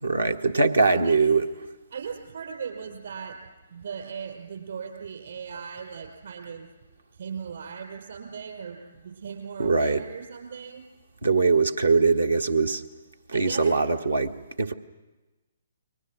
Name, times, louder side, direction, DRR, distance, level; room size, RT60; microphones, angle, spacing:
voice 1, 0.0-1.5 9.6-10.0 11.2-12.8 13.3-14.7, right 4 dB, 80° right, 7 dB, 1.3 m, -22 dB
voice 2, 0.8-1.2 1.9-3.4 3.7-6.6 7.2-10.8 13.3-13.6, right 6 dB, 60° right, 4 dB, 4.9 m, -38 dB
30.0 x 22.5 x 6.2 m, 1.2 s
figure-of-eight pair, 130°, 0 cm